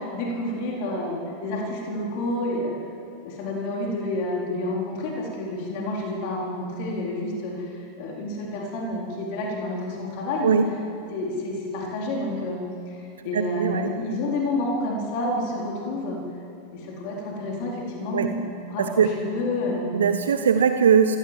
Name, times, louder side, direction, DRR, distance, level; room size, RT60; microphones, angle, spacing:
voice 1, 0.0-2.7 3.2-10.6 11.1-12.6 12.9-13.0 13.2-16.2 16.7-19.9, left 1 dB, 45° left, -2 dB, 4.1 m, -29 dB
voice 2, 13.3-13.9 18.1-18.3 18.8-19.1 19.9-21.2, right 7 dB, 65° right, 8 dB, 0.9 m, -20 dB
23.0 x 16.5 x 7.6 m, 2.4 s
figure-of-eight pair, 90°, 0 cm